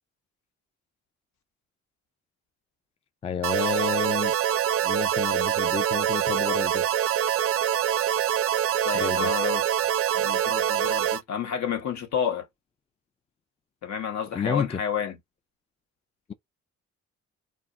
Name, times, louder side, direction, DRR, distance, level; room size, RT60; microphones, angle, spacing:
voice 1, 3.2-4.3 4.8-6.9 8.9-9.3 14.3-14.8, left 7 dB, 20° left, 0.3 m, -30 dB
sound 1, 3.4-11.2, right 10 dB, 50° right, 0.4 m, -25 dB
voice 2, 8.8-9.6 10.1-12.5 13.8-15.2, left 7 dB, 70° left, 1.0 m, -30 dB
2.3 x 2.1 x 3.6 m
cardioid pair, 90°, 30 cm